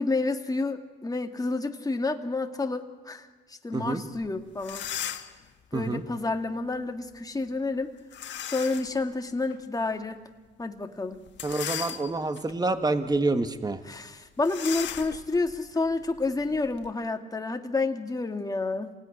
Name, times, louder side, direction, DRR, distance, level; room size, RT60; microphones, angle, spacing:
voice 1, 0.0-4.9 5.7-7.9 8.5-10.2 10.6-11.2 13.8-18.9, left 3 dB, 20° left, 5 dB, 2.0 m, -29 dB
sound 1, 4.2-4.3 4.6-5.4 8.1-9.0 9.5-9.6 11.3-12.4 13.0-13.2 13.4-13.6 14.4-16.9, left 10 dB, 65° left, 1.6 m, -37 dB
voice 2, 11.4-13.8, right 2 dB, 20° right, 9 dB, 1.5 m, -27 dB
26.5 x 17.5 x 10.0 m, 1.3 s
cardioid pair, 90°, 20 cm